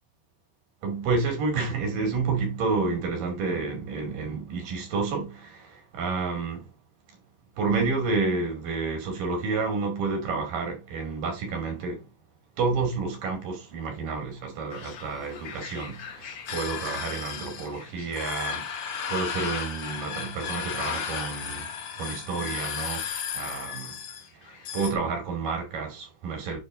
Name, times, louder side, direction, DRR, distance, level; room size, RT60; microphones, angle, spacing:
voice 1, 0.8-6.7 7.6-12.1 12.6-21.7 22.0-23.1 23.3-24.0 24.4-26.6, right 4 dB, 80° right, 4.3 m, -30 dB
sound 1, 14.7-24.9, left 7 dB, 90° left, 1.0 m, -35 dB
9.5 x 3.5 x 3.8 m
omnidirectional pair, 3.9 m